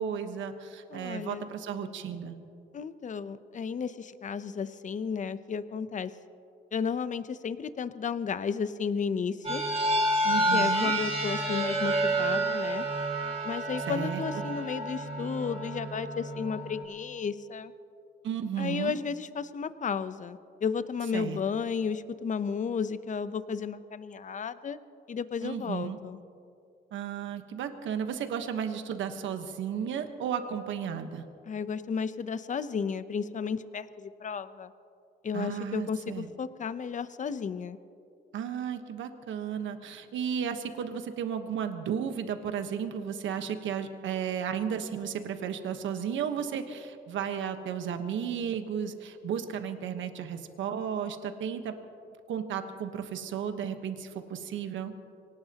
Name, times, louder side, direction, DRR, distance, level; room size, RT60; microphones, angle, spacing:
voice 1, 0.0-2.3 10.2-10.9 13.9-14.4 18.2-19.0 21.1-21.4 25.4-26.0 26.9-31.2 35.3-36.3 38.3-51.7 52.3-54.9, right 8 dB, 75° right, 8 dB, 1.2 m, -34 dB
voice 2, 0.9-1.5 2.7-6.1 6.7-9.6 10.5-12.8 13.4-17.7 18.6-24.8 25.1-26.2 31.5-34.7 35.2-37.8, left 6 dB, 40° left, 13 dB, 0.7 m, -33 dB
sound 1, 9.4-16.8, right 1 dB, 30° right, 4.0 m, -29 dB
23.5 x 18.5 x 2.9 m, 2.6 s
cardioid pair, 90°, 20 cm